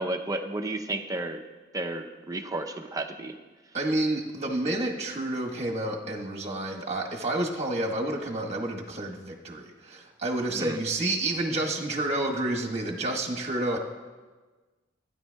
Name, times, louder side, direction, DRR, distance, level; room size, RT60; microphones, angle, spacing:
voice 1, 0.0-1.4 1.7-3.4 10.5-10.8, right 2 dB, 20° right, 4 dB, 0.6 m, -32 dB
voice 2, 3.7-13.8, right 1 dB, 35° right, 0 dB, 1.3 m, -29 dB
16.0 x 9.8 x 2.3 m, 1.3 s
head